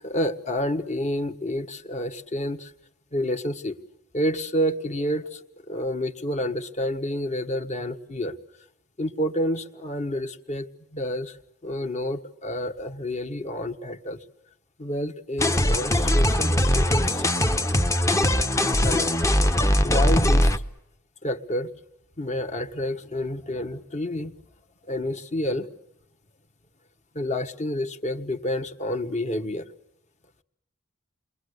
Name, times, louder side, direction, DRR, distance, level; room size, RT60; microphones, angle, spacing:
voice 1, 0.0-2.7 3.1-3.8 4.1-8.4 9.0-14.2 14.8-17.3 18.8-19.2 19.8-20.5 21.2-21.7 22.2-24.3 24.9-25.7 27.1-29.7, left 1 dB, 35° left, 6 dB, 1.4 m, -29 dB
sound 1, 15.4-20.6, left 1 dB, 15° left, 0.9 m, -21 dB
29.0 x 22.5 x 8.1 m, 0.85 s
head